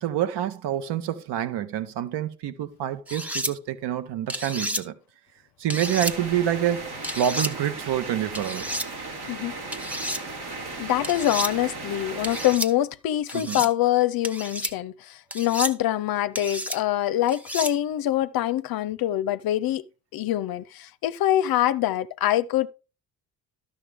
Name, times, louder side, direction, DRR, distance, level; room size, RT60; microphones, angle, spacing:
voice 1, 0.0-5.0 5.6-8.6 13.3-13.7, right 11 dB, 55° right, 1.1 m, -27 dB
sound 1, 3.1-3.5 4.3-4.8 5.7-6.1 7.0-7.5 8.3-8.9 9.7-10.2 11.0-11.5 12.2-12.7 13.3-13.7 14.2-14.7 15.3-15.7 16.3-16.8 17.3-17.7, equal, 5° right, 0.9 m, -31 dB
sound 2, 5.8-12.6, right 3 dB, 90° right, 2.6 m, -36 dB
voice 2, 10.8-19.8 20.1-22.7, left 13 dB, 50° left, 0.6 m, -24 dB
12.0 x 6.9 x 3.4 m
hypercardioid pair, 50°, 48 cm